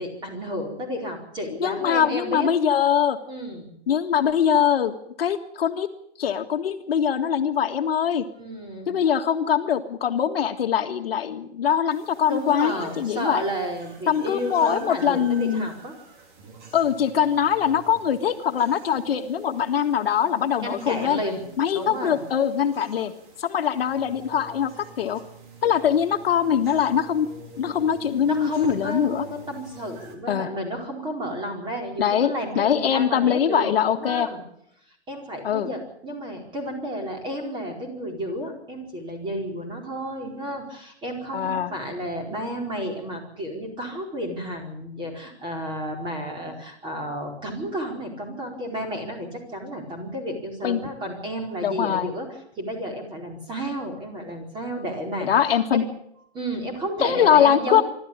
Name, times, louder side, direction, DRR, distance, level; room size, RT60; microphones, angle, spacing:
voice 1, 0.0-2.5 3.3-3.7 8.4-8.9 12.3-15.9 20.6-21.4 21.7-22.2 28.2-34.4 35.1-55.4 55.7-55.8 56.3-57.8, equal, 15° right, 2 dB, 4.5 m, -32 dB
voice 2, 1.6-3.2 3.9-5.9 6.2-8.3 8.9-13.4 14.1-15.7 16.7-21.2 21.6-23.1 23.4-24.7 25.0-25.2 25.6-27.3 27.6-29.2 30.3-30.5 32.0-34.3 35.4-35.7 41.3-41.7 50.6-50.8 51.6-52.1 55.2-55.8 57.0-57.8, left 8 dB, 65° left, 6 dB, 1.8 m, -22 dB
sound 1, 11.9-30.2, right 4 dB, 50° right, 4.7 m, -48 dB
25.5 x 13.0 x 8.9 m, 0.74 s
hypercardioid pair, 155°, 32 cm